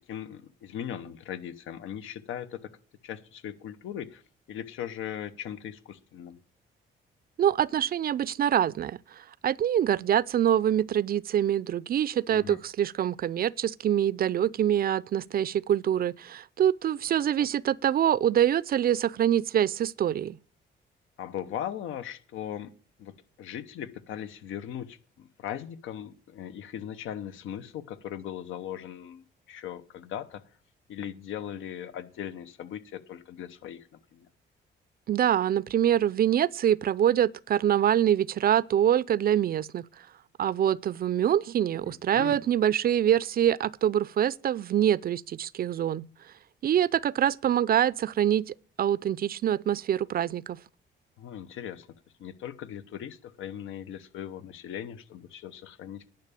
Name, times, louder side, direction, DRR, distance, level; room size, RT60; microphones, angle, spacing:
voice 1, 0.1-2.7 3.0-4.2 4.5-6.4 12.3-12.6 17.4-17.5 21.2-22.7 23.0-30.4 30.9-34.3 41.9-42.4 51.2-51.9 52.2-56.0, left 10 dB, 85° left, 1.0 m, -39 dB
voice 2, 7.4-20.4 35.1-39.8 40.4-46.1 46.6-50.6, right 10 dB, 50° right, 0.4 m, -25 dB
10.5 x 5.7 x 8.5 m
cardioid pair, 90°, 20 cm